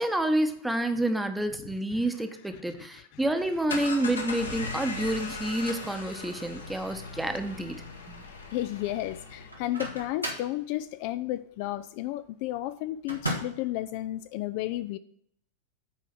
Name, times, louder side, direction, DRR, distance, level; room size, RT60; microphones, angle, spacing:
voice 1, 0.0-8.2, right 1 dB, 5° right, 0.9 m, -29 dB
voice 2, 2.7-3.0 8.5-15.0, left 15 dB, 45° left, 0.3 m, -33 dB
sound 1, 3.4-9.8, left 3 dB, 75° left, 1.3 m, -39 dB
Microwave oven, 9.5-10.6 13.1-13.7, right 1 dB, 90° right, 1.6 m, -34 dB
8.0 x 4.7 x 5.8 m
figure-of-eight pair, 90°, 0 cm